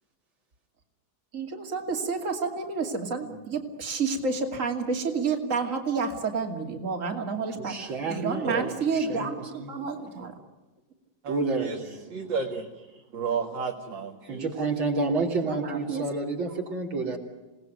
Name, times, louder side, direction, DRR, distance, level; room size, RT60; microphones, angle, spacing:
voice 1, 1.3-10.3 15.4-16.2, right 4 dB, 40° right, 3 dB, 2.9 m, -30 dB
voice 2, 7.7-9.3 9.5-9.7 11.3-12.1 14.2-17.2, right 3 dB, 90° right, 2 dB, 4.1 m, -30 dB
voice 3, 12.1-12.7 13.1-14.4, right 5 dB, 70° right, 1 dB, 2.7 m, -31 dB
27.5 x 19.0 x 9.4 m, 1.1 s
omnidirectional pair, 2.1 m